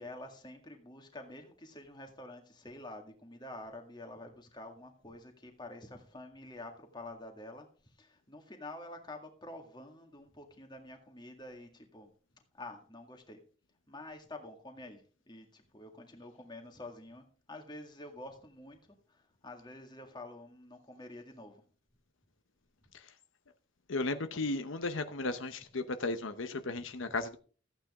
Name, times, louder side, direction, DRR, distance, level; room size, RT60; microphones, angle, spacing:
voice 1, 0.0-7.7 8.0-12.1 12.5-13.4 13.9-15.0 15.3-18.8 19.1-21.6 26.8-27.2, left 2 dB, 20° left, 2.0 m, -48 dB
voice 2, 23.9-27.4, left 3 dB, 80° left, 0.9 m, -35 dB
14.5 x 8.9 x 3.6 m
head